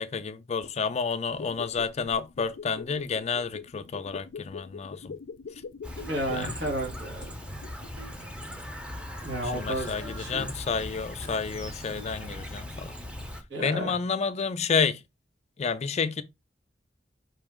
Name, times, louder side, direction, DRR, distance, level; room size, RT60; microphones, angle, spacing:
voice 1, 0.0-5.2 6.3-6.5 9.5-12.9 13.6-15.0 15.6-16.2, left 5 dB, 35° left, 0.4 m, -30 dB
sound 1, 1.3-8.1 8.4-8.5, left 5 dB, 90° left, 0.5 m, -43 dB
Chirp tweet, 5.8-13.4, left 1 dB, 5° right, 0.7 m, -39 dB
sound 2, 6.0-6.7 7.2-8.7 9.2-10.6 11.2-12.7, right 1 dB, 60° right, 1.9 m, -52 dB
voice 2, 6.1-7.3 9.2-10.5 13.5-13.9, right 1 dB, 85° right, 2.0 m, -32 dB
4.9 x 2.9 x 3.6 m
head